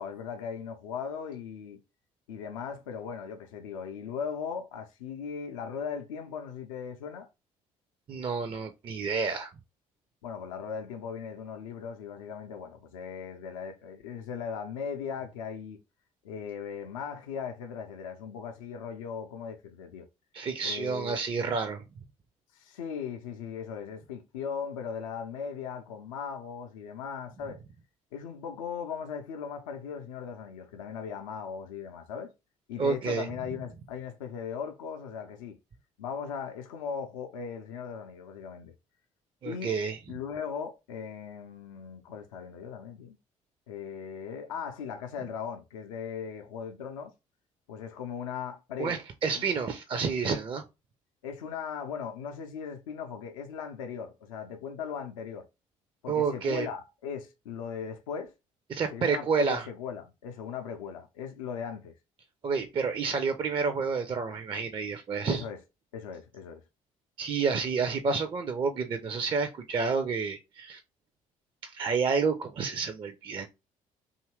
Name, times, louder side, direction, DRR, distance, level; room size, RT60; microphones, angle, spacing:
voice 1, 0.0-1.8 2.3-7.3 10.2-15.8 16.2-20.1 20.6-21.2 22.5-27.6 28.1-32.3 32.7-35.6 36.0-38.7 39.4-39.7 40.1-43.2 43.7-47.1 47.7-49.0 49.4-49.5 51.2-55.4 56.0-58.3 58.9-61.9 65.3-65.6 65.9-66.6, left 6 dB, 75° left, 0.4 m, -38 dB
voice 2, 8.1-9.5 20.3-21.8 32.8-33.3 39.4-40.0 48.8-50.6 56.1-56.7 58.7-59.6 62.4-65.4 67.2-70.8 71.6-73.5, right 5 dB, 30° right, 0.4 m, -29 dB
2.7 x 2.4 x 3.0 m
figure-of-eight pair, 50°, 17 cm